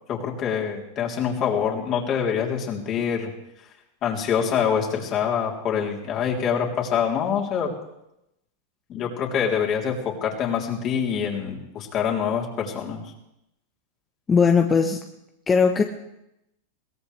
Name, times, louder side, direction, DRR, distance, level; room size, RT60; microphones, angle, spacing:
voice 1, 0.1-3.3 4.0-7.8 8.9-13.1, left 7 dB, 40° left, -1 dB, 3.6 m, -25 dB
voice 2, 14.3-15.0 15.5-15.8, left 5 dB, 20° left, 4 dB, 1.1 m, -18 dB
22.0 x 17.5 x 3.4 m, 0.86 s
hypercardioid pair, 115°, 0 cm